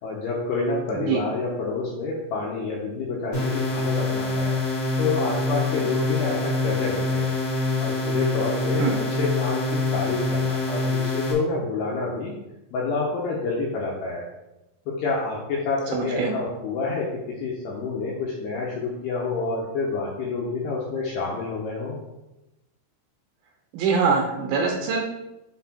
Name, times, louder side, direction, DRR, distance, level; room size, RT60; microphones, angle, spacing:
voice 1, 0.0-4.6 5.0-7.3 7.8-12.3 12.7-14.3 14.9-22.0, left 3 dB, 80° left, -3 dB, 2.5 m, -28 dB
sound 1, 3.3-11.3, left 3 dB, 40° left, 1.7 m, -25 dB
voice 2, 15.9-16.3 23.7-25.0, right 5 dB, 75° right, 1 dB, 2.8 m, -23 dB
6.7 x 4.1 x 4.2 m, 0.96 s
omnidirectional pair, 5.6 m